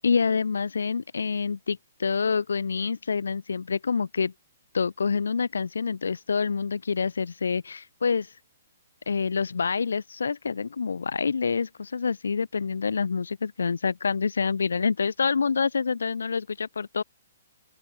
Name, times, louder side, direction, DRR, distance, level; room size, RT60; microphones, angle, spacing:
voice 1, 0.0-4.3 4.7-8.3 9.1-17.0, left 5 dB, 80° left, 3.0 m, -27 dB
open air
hypercardioid pair, 140°, 0 cm